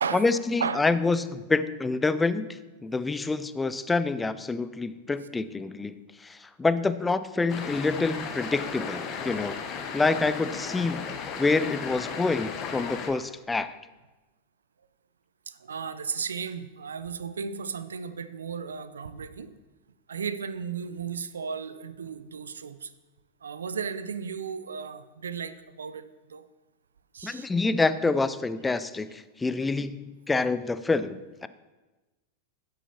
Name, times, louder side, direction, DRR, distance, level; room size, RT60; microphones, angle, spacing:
voice 1, 0.1-6.0 6.2-9.6 9.9-11.1 11.4-13.7 27.2-31.5, left 3 dB, 10° left, 14 dB, 0.4 m, -27 dB
sound 1, 7.5-13.1, left 6 dB, 35° left, 1.2 m, -35 dB
voice 2, 15.5-19.5 20.1-22.9 23.4-26.4 27.1-27.5, right 6 dB, 70° right, 13 dB, 0.5 m, -34 dB
12.5 x 9.9 x 2.8 m, 1.1 s
figure-of-eight pair, 90°, 0 cm